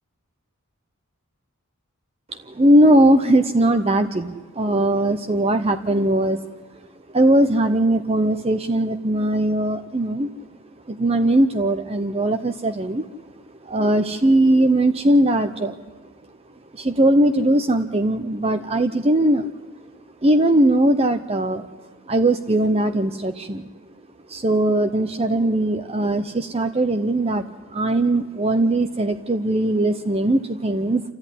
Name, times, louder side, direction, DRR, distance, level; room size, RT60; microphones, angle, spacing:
voice 1, 2.3-6.4 7.1-10.3 10.9-13.0 13.6-15.8 16.7-19.5 20.2-21.7 22.1-23.7 24.3-31.0, right 1 dB, 30° right, 8 dB, 0.7 m, -19 dB
28.0 x 13.5 x 10.0 m, 1.3 s
head